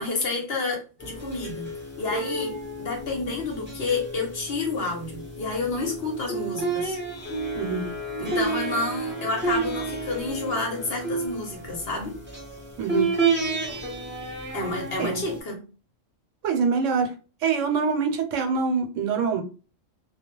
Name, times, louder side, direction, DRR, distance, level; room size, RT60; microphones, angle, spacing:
voice 1, 0.0-1.7 2.0-7.0 8.2-12.2 14.5-15.6, left 3 dB, 55° left, 1 dB, 0.9 m, -29 dB
sound 1, 1.0-15.4, right 3 dB, 10° right, 0.8 m, -31 dB
voice 2, 7.5-7.9 12.8-13.1 15.0-15.2 16.4-17.1 17.4-19.4, right 5 dB, 75° right, 4 dB, 0.9 m, -25 dB
2.3 x 2.0 x 2.9 m, 0.34 s
omnidirectional pair, 1.3 m